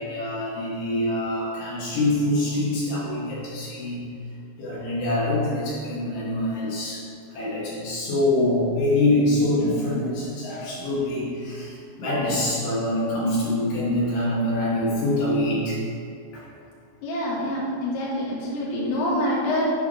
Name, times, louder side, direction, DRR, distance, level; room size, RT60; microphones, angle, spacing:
voice 1, 0.0-4.0 4.6-7.0 7.3-15.8 16.3-16.4, left 1 dB, 70° left, -6 dB, 2.2 m, -25 dB
voice 2, 17.0-19.7, equal, 85° left, -6 dB, 3.4 m, -26 dB
9.5 x 5.3 x 3.6 m, 2.4 s
omnidirectional pair, 5.2 m